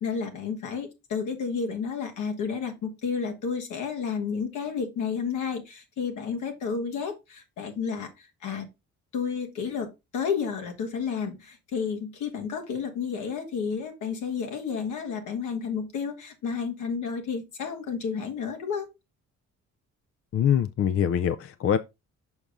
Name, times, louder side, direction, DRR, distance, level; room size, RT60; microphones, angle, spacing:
voice 1, 0.0-8.7 9.1-18.9, left 6 dB, 80° left, 1.7 m, -31 dB
voice 2, 20.3-21.8, left 9 dB, 50° left, 0.5 m, -24 dB
6.2 x 5.2 x 3.5 m
cardioid pair, 90°, 30 cm